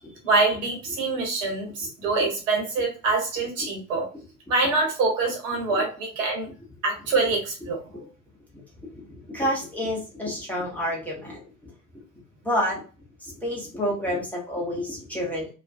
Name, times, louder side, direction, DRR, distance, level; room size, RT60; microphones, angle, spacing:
voice 1, 0.2-4.1 4.5-6.5 6.8-8.0, right 3 dB, 60° right, 0 dB, 1.1 m, -25 dB
voice 2, 8.5-9.0 9.3-11.7 12.4-12.8 13.2-15.5, equal, 5° left, -4 dB, 1.0 m, -29 dB
2.4 x 2.2 x 2.5 m, 0.34 s
figure-of-eight pair, 55°, 43 cm